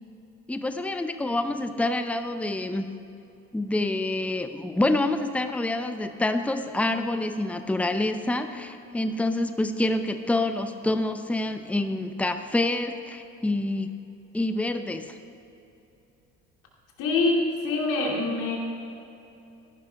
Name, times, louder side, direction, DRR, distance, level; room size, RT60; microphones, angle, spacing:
voice 1, 0.5-2.9 3.5-13.9 14.3-15.2, left 2 dB, 5° left, 8 dB, 0.7 m, -27 dB
voice 2, 17.0-18.6, left 3 dB, 60° left, -1 dB, 2.8 m, -25 dB
15.0 x 11.5 x 3.5 m, 2.8 s
hypercardioid pair, 65°, 36 cm